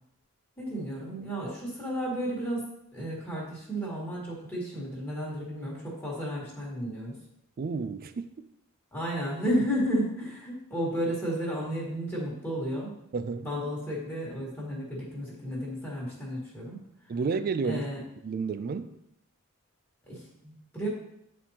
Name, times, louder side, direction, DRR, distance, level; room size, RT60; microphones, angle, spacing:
voice 1, 0.6-2.6 2.9-7.1 8.9-12.9 13.4-16.8 17.6-18.0 20.1-20.9, equal, 10° left, 1.7 m, -32 dB
voice 2, 7.6-8.5 13.1-13.5 17.1-17.8 18.2-19.0, right 4 dB, 45° right, 0.3 m, -31 dB
9.0 x 4.3 x 2.9 m
head